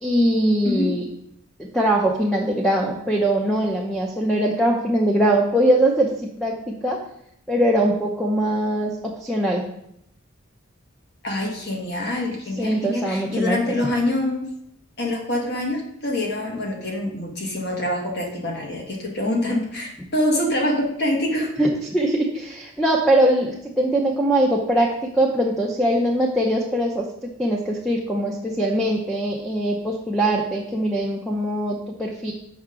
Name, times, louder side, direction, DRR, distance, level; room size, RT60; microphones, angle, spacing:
voice 1, 0.0-1.0 1.6-7.0 7.5-9.6 12.6-13.7 21.6-32.3, right 1 dB, ahead, -1 dB, 0.6 m, -22 dB
voice 2, 11.2-14.5 15.0-21.5, left 1 dB, 50° left, 0 dB, 1.6 m, -25 dB
6.0 x 5.7 x 3.7 m, 0.75 s
head